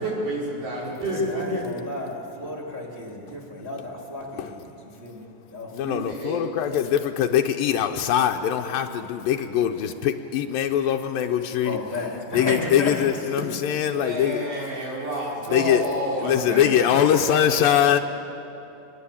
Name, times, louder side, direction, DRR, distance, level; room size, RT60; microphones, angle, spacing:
voice 1, 0.0-1.7 5.8-6.4 12.7-12.9 13.9-17.7, equal, 65° right, -4 dB, 6.8 m, -30 dB
voice 2, 1.3-4.7 5.0-6.0 11.6-13.1 13.4-13.5, left 2 dB, 10° right, -1 dB, 2.7 m, -33 dB
voice 3, 5.7-11.8 12.3-14.4 15.5-15.8 16.2-18.0, left 9 dB, 85° left, 3 dB, 2.5 m, -22 dB
25.5 x 21.0 x 8.6 m, 2.9 s
omnidirectional pair, 4.0 m